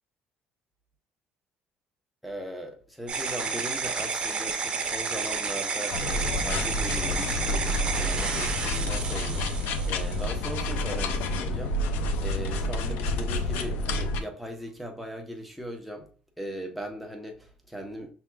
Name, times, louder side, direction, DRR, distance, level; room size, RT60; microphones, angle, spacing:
voice 1, 2.2-16.1 16.4-18.1, equal, ahead, 0.8 m, -39 dB
sound 1, 3.1-10.6, right 5 dB, 30° right, 0.9 m, -31 dB
sound 2, 5.9-14.2, left 1 dB, 80° left, 0.5 m, -29 dB
5.9 x 3.6 x 2.3 m
cardioid pair, 135°, 3 cm